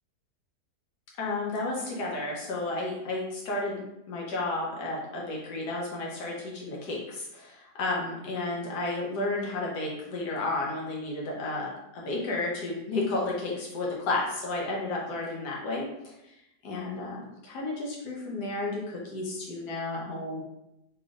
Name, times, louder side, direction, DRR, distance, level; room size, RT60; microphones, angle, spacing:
voice 1, 1.2-15.9 16.3-16.4 16.6-20.4, left 2 dB, 80° left, -3 dB, 1.4 m, -32 dB
3.1 x 3.1 x 2.4 m, 0.85 s
omnidirectional pair, 1.7 m